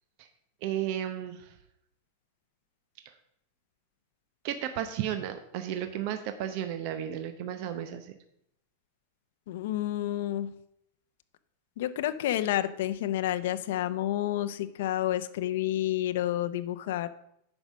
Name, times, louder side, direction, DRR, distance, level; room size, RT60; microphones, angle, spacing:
voice 1, 0.6-1.5 3.0-3.1 4.4-8.1, right 10 dB, 45° right, 8 dB, 0.7 m, -33 dB
voice 2, 9.5-10.5 11.8-17.1, left 13 dB, 65° left, 10 dB, 0.6 m, -30 dB
9.6 x 5.4 x 6.2 m, 0.76 s
supercardioid pair, 165°, 0 cm